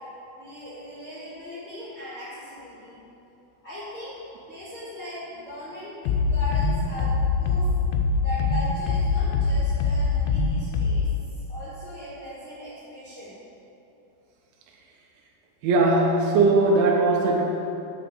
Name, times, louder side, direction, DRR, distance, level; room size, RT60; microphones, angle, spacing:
voice 1, 0.3-3.0 3.6-7.7 8.2-11.1 11.5-13.3, left 1 dB, 35° left, -12 dB, 1.7 m, -38 dB
sound 1, 6.1-11.0, left 4 dB, 85° left, 2.9 m, -23 dB
voice 2, 15.6-17.4, right 3 dB, 80° right, 0 dB, 2.9 m, -19 dB
6.7 x 6.0 x 6.9 m, 2.9 s
omnidirectional pair, 5.6 m